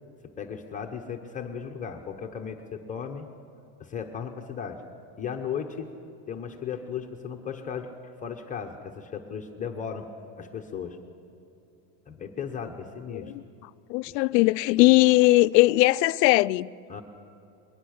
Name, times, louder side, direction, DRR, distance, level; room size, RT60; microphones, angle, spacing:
voice 1, 0.4-3.3 3.8-4.8 5.2-5.9 6.3-10.1 10.4-11.0 12.1-13.3 14.1-14.2 16.9-17.0, left 7 dB, 15° left, 0.8 m, -36 dB
voice 2, 13.9-16.7, left 20 dB, 75° left, 0.6 m, -19 dB
22.0 x 19.0 x 6.4 m
supercardioid pair, 150°, 49 cm